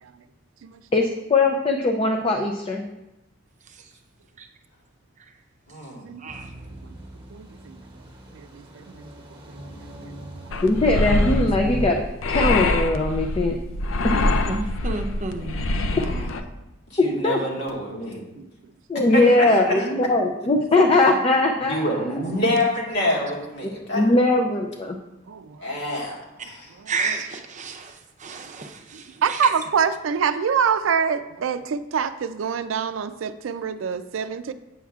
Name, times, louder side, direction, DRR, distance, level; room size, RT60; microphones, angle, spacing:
voice 1, 0.9-2.8 10.6-12.0 12.3-13.6 17.0-17.4 18.9-21.9 23.9-25.0, left 2 dB, 30° left, 2 dB, 0.5 m, -20 dB
voice 2, 5.7-6.0 9.6-10.1 15.9-16.3 16.9-18.2 19.1-19.9 21.7-24.1 25.6-26.7, left 1 dB, 65° left, -3 dB, 1.8 m, -27 dB
sound 1, 6.3-11.9, right 1 dB, 25° right, 1.1 m, -39 dB
voice 3, 7.3-7.8 8.3-9.1 9.5-9.6 10.5-10.6 16.1-16.2 17.8-17.9 18.1-18.5 25.3-25.9 26.8-26.9 28.9-34.5, right 6 dB, 85° right, 11 dB, 0.4 m, -26 dB
sound 2, 10.5-16.4, left 2 dB, 80° left, 0.5 m, -24 dB
voice 4, 14.5-15.7 26.9-29.5, right 4 dB, 40° right, 4 dB, 0.7 m, -31 dB
8.5 x 7.0 x 2.4 m, 0.96 s
head